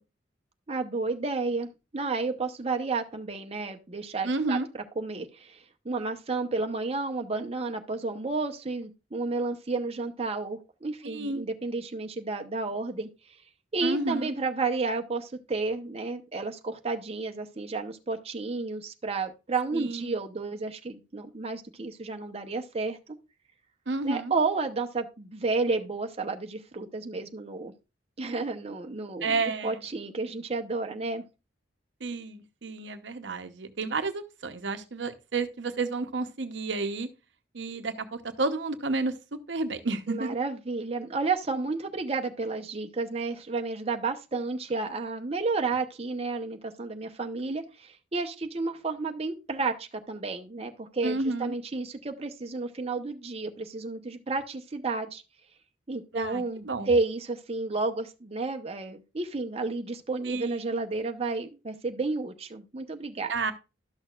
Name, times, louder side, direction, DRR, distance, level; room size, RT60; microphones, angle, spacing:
voice 1, 0.7-4.6 5.0-5.6 5.8-13.1 13.7-23.0 24.0-27.7 28.2-31.2 40.1-55.2 55.9-63.3, right 3 dB, 35° right, 0.8 m, -31 dB
voice 2, 4.2-4.7 11.0-11.4 13.8-14.3 19.7-20.1 23.9-24.3 29.2-29.8 32.0-37.1 37.5-40.4 51.0-51.5 56.1-56.9 60.2-60.7 63.3-63.5, right 3 dB, 80° right, 0.9 m, -31 dB
12.0 x 6.4 x 2.4 m
head